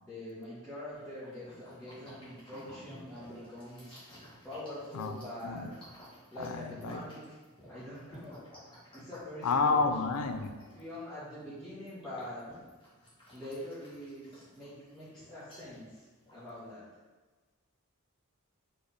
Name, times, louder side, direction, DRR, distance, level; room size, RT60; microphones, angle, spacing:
voice 1, 0.0-4.0 4.4-5.7 6.3-7.4 7.7-8.4 8.9-9.9 10.7-12.5 13.3-16.0 16.3-16.8, left 1 dB, 5° left, -14 dB, 1.2 m, -44 dB
sound 1, 0.9-16.7, equal, 20° left, 1.3 m, -54 dB
voice 2, 6.4-7.0 9.4-10.5, left 4 dB, 80° left, 7 dB, 0.4 m, -30 dB
4.2 x 3.2 x 3.4 m, 1.3 s
head